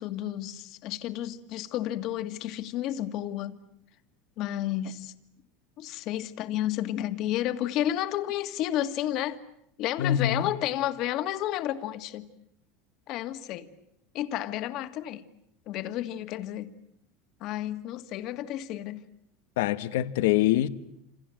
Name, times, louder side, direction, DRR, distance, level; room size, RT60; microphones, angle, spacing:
voice 1, 0.0-3.6 4.4-5.1 5.8-9.4 9.8-12.3 13.1-13.7 14.1-15.2 15.7-16.7 17.4-19.0, left 12 dB, 45° left, 1.9 m, -31 dB
voice 2, 10.0-10.5 19.6-20.7, left 12 dB, 85° left, 1.3 m, -24 dB
28.0 x 27.5 x 7.7 m
supercardioid pair, 150°, 0 cm